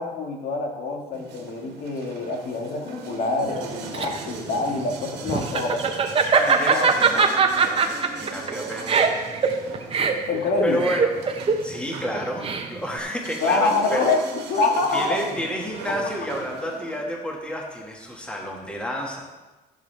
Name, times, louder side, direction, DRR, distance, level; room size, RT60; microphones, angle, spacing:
voice 1, 0.0-5.9 6.7-6.8 10.3-10.9 13.4-15.2, left 3 dB, 65° left, 2 dB, 1.9 m, -25 dB
sound 1, 1.1-17.0, right 5 dB, 85° right, 1.8 m, -39 dB
Laughter, 3.6-13.0, right 5 dB, 35° right, 1.0 m, -22 dB
voice 2, 6.3-9.2 10.6-11.1 11.6-14.1 14.9-19.2, equal, 5° left, -1 dB, 1.9 m, -30 dB
15.0 x 7.3 x 3.5 m, 1.1 s
cardioid pair, 110°, 17 cm